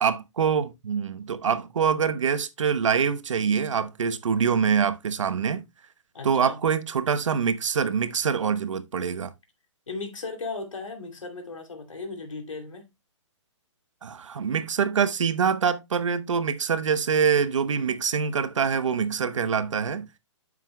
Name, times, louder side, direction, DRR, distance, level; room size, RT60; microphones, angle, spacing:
voice 1, 0.0-5.6 6.2-9.3 14.0-20.1, right 6 dB, 75° right, 1.0 m, -25 dB
voice 2, 6.1-6.6 9.9-12.9, left 3 dB, 85° left, 2.8 m, -36 dB
9.3 x 7.5 x 2.2 m
hypercardioid pair, 140°, 16 cm